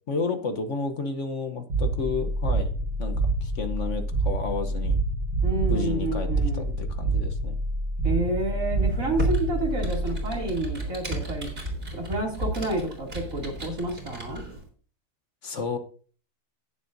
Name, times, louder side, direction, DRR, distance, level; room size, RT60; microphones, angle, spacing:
voice 1, 0.1-2.7 3.0-5.0 5.6-6.3 6.5-7.6 15.4-15.8, left 4 dB, 55° left, 8 dB, 1.2 m, -31 dB
sound 1, 1.7-10.8, right 2 dB, 85° right, 2.0 m, -27 dB
voice 2, 5.4-6.7 8.0-11.5 11.9-14.4, right 2 dB, 60° right, 0 dB, 3.1 m, -30 dB
Computer keyboard, 8.8-14.6, right 1 dB, 40° right, 4.0 m, -34 dB
18.0 x 7.4 x 2.6 m, 0.41 s
omnidirectional pair, 1.6 m